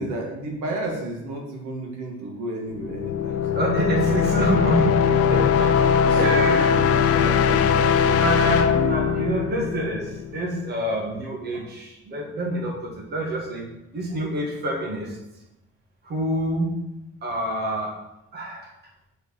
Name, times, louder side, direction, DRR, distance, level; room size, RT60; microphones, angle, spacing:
voice 1, 0.0-4.2 5.0-5.5 5.9-9.2, right 1 dB, 85° right, 0 dB, 1.6 m, -32 dB
sound 1, 2.7-10.4, left 7 dB, 55° left, 0.5 m, -21 dB
voice 2, 3.5-6.8 7.1-7.2 8.2-15.2 16.0-16.8 17.2-18.0 18.3-18.7, right 1 dB, 35° right, -1 dB, 1.4 m, -27 dB
4.8 x 4.6 x 5.3 m, 0.89 s
cardioid pair, 165°, 29 cm